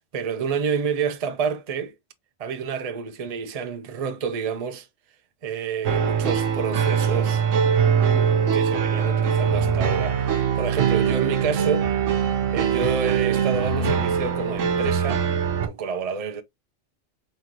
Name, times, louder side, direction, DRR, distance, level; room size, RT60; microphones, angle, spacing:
voice 1, 0.0-1.9 2.4-4.9 5.4-7.4 8.1-11.9 12.5-15.2 15.6-16.4, right 6 dB, 40° right, 0.6 m, -29 dB
sound 1, 5.8-15.7, right 7 dB, 80° right, 1.2 m, -22 dB
4.2 x 3.7 x 2.9 m
omnidirectional pair, 1.3 m